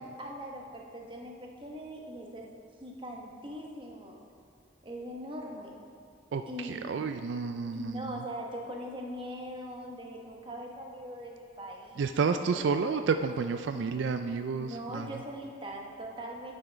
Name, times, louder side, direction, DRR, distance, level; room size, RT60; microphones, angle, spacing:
voice 1, 0.0-2.5 2.8-4.2 4.8-5.8 6.5-7.0 7.7-12.8 13.7-13.8 14.6-16.6, equal, 25° right, 0 dB, 1.0 m, -41 dB
voice 2, 6.3-8.2 12.0-15.2, right 5 dB, 70° right, 8 dB, 0.3 m, -30 dB
10.5 x 5.6 x 5.1 m, 2.2 s
head